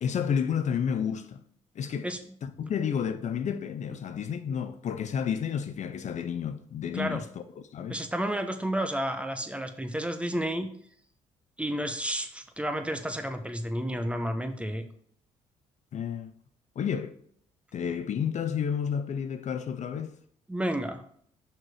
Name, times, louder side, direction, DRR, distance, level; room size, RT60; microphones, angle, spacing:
voice 1, 0.0-1.4 1.8-2.1 2.4-7.3 7.7-8.0 15.9-16.3 16.8-17.2 17.7-20.1, left 7 dB, 50° left, 0.6 m, -31 dB
voice 2, 7.9-10.7 11.6-14.8 20.5-21.0, right 1 dB, 10° right, 1.1 m, -31 dB
6.0 x 4.6 x 4.9 m
hypercardioid pair, 50°, 15 cm